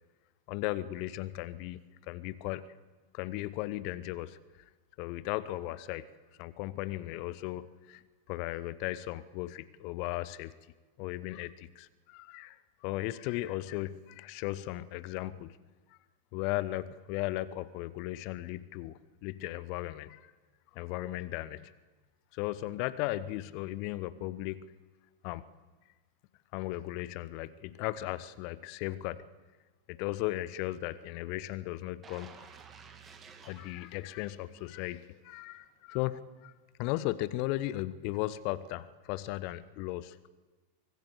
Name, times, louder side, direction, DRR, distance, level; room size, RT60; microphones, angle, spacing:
voice 1, 0.5-2.7 3.1-4.4 5.0-6.1 6.4-8.0 8.3-10.5 11.0-15.6 16.3-20.3 20.7-21.7 22.3-24.7 25.2-25.4 26.5-29.2 29.9-32.3 33.4-36.5 36.8-40.3, left 16 dB, 45° left, 17 dB, 0.8 m, -36 dB
sound 1, 32.0-35.0 35.4-35.5, right 6 dB, 25° right, 2.4 m, -54 dB
24.0 x 19.5 x 8.0 m, 1.3 s
figure-of-eight pair, 90°, 0 cm